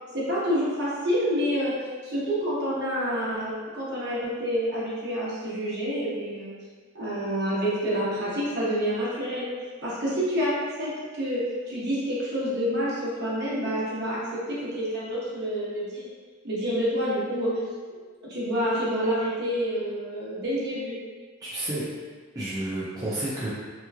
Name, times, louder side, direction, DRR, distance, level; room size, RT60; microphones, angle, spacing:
voice 1, 0.1-1.7 2.0-6.5 6.9-9.5 9.8-10.5 10.8-16.1 16.4-17.5 18.2-20.9, equal, 55° right, -8 dB, 1.1 m, -28 dB
voice 2, 21.4-21.8 22.3-23.5, right 1 dB, 20° right, -9 dB, 0.5 m, -30 dB
3.5 x 3.0 x 2.3 m, 1.5 s
head